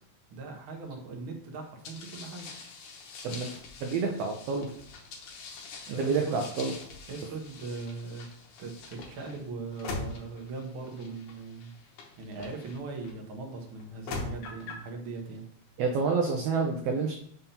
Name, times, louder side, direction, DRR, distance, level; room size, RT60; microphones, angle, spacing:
voice 1, 0.3-2.5 5.9-6.4 7.1-8.3 8.6-11.7 12.2-15.5, right 4 dB, 55° right, 1 dB, 1.6 m, -40 dB
sound 1, 1.8-13.1 13.8-14.9, left 4 dB, 85° left, 2.5 m, -43 dB
voice 2, 3.8-4.7 6.0-6.7 15.8-17.1, right 4 dB, 75° right, 2 dB, 1.5 m, -28 dB
5.7 x 3.5 x 5.5 m, 0.66 s
omnidirectional pair, 3.4 m